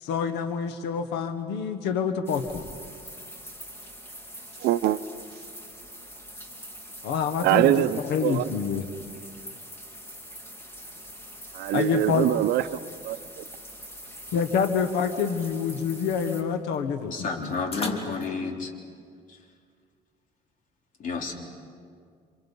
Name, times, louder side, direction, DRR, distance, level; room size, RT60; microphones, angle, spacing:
voice 1, 0.0-2.7 7.0-7.8 8.1-8.9 11.7-12.3 14.3-17.6, left 6 dB, 90° left, 1.5 m, -27 dB
sound 1, 2.3-16.4, equal, 15° left, 3.5 m, -44 dB
sound 2, 3.6-18.3, left 3 dB, 35° left, 2.5 m, -46 dB
voice 2, 4.6-5.0 7.4-8.5 11.5-12.6 13.0-13.4, right 13 dB, 75° right, 0.7 m, -23 dB
voice 3, 17.1-18.7 19.3-19.4 21.0-21.3, left 4 dB, 50° left, 3.4 m, -31 dB
29.0 x 27.0 x 5.5 m
cardioid pair, 110°, 17 cm